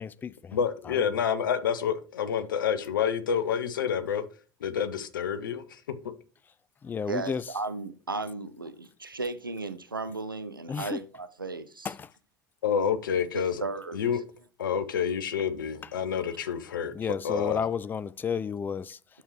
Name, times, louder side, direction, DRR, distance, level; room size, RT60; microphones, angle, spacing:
voice 1, 0.0-0.6 0.9-1.1 6.8-7.5 10.7-11.0 11.8-12.1 16.9-19.0, left 6 dB, 15° left, 0.3 m, -32 dB
voice 2, 0.5-4.2 4.6-5.8 12.6-13.6 13.9-14.2 14.6-16.9 17.2-17.6, left 7 dB, 70° left, 0.8 m, -28 dB
voice 3, 7.1-11.9 13.3-14.0, right 3 dB, 90° right, 0.5 m, -35 dB
9.9 x 6.3 x 3.2 m
figure-of-eight pair, 70°, 11 cm